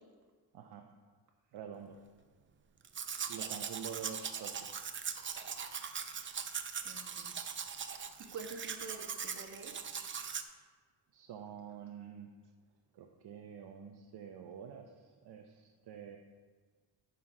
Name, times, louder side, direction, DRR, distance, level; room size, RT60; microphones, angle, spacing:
voice 1, 1.5-2.0 3.3-4.7 11.1-12.3 12.9-16.2, right 8 dB, 60° right, 3 dB, 0.8 m, -47 dB
Domestic sounds home sounds, 2.8-10.4, right 7 dB, 30° right, 0.5 m, -41 dB
voice 2, 6.8-7.3 8.3-9.7 10.5-10.6, right 4 dB, 45° right, 0 dB, 1.5 m, -47 dB
9.4 x 5.8 x 4.8 m, 1.5 s
cardioid pair, 115°, 44 cm